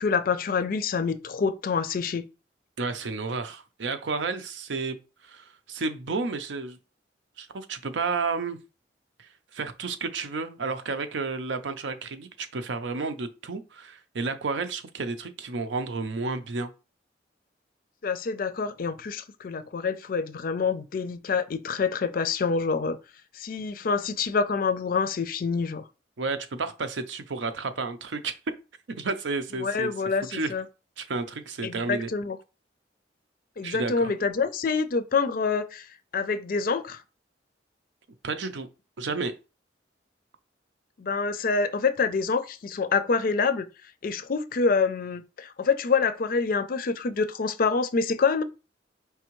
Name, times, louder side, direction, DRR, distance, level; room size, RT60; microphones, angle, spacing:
voice 1, 0.0-2.3 18.0-23.0 23.3-25.8 29.6-30.6 31.6-32.4 33.6-35.9 36.1-37.0 41.0-43.7 44.0-48.4, left 5 dB, 50° left, 0.4 m, -26 dB
voice 2, 2.8-6.8 7.4-8.6 9.2-16.7 26.2-28.4 29.0-29.9 30.3-30.5 31.0-32.1 33.6-34.1 38.2-38.7 39.0-39.4, right 4 dB, 85° right, 0.6 m, -31 dB
4.7 x 3.4 x 3.0 m
head